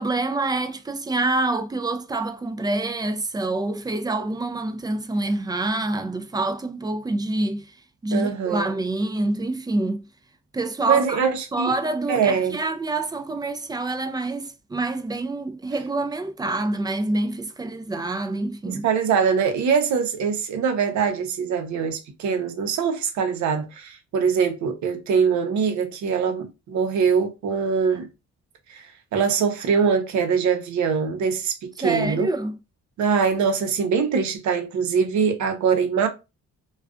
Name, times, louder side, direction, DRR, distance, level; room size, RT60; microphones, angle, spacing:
voice 1, 0.0-7.8 8.0-10.0 10.5-11.2 11.5-18.9 31.8-32.6, right 2 dB, 15° right, 0.3 m, -26 dB
voice 2, 8.1-8.7 10.9-11.7 12.1-12.5 18.7-28.1 28.7-28.8 29.1-32.3 33.0-36.1, right 6 dB, 70° right, 0.7 m, -23 dB
2.4 x 2.3 x 2.4 m
cardioid pair, 90°, 30 cm